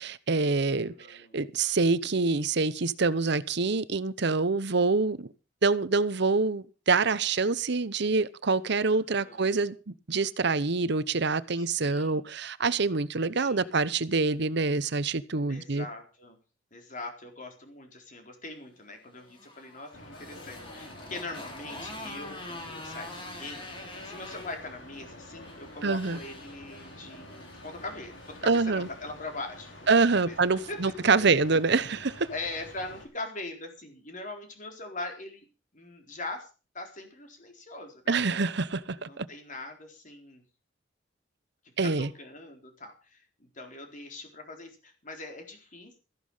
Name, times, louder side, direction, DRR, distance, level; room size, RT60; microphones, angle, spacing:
voice 1, 0.0-5.3 5.6-15.9 25.8-26.2 28.4-28.9 29.9-32.3 38.1-39.3 41.8-42.1, right 4 dB, 65° right, 0.9 m, -26 dB
voice 2, 0.7-1.4 8.9-9.5 11.5-12.2 13.4-13.8 15.5-16.4 16.7-29.7 30.3-30.4 30.7-30.8 31.0-31.3 32.3-35.5 35.7-36.5 36.7-38.2 39.0-40.4 41.8-46.0, left 2 dB, 45° left, 4.1 m, -42 dB
Motorcycle, 19.0-28.4, left 2 dB, 30° left, 3.7 m, -45 dB
sound 1, 19.9-33.1, left 1 dB, 85° left, 5.8 m, -48 dB
14.5 x 11.5 x 5.6 m
head